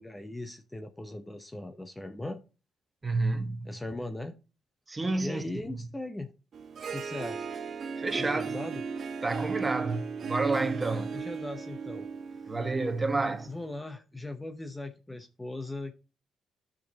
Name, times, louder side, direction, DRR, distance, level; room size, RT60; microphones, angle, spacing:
voice 1, 0.0-2.4 3.6-4.3 5.2-6.3 6.9-7.5 8.2-8.8 11.1-12.1 13.5-15.9, left 2 dB, 15° left, 0.7 m, -39 dB
voice 2, 3.0-3.7 4.9-5.4 8.0-8.6 9.2-11.2 12.5-13.5, right 3 dB, 20° right, 1.2 m, -30 dB
Harp, 6.5-13.6, right 5 dB, 50° right, 0.9 m, -36 dB
10.0 x 6.1 x 2.8 m
cardioid pair, 90°, 0 cm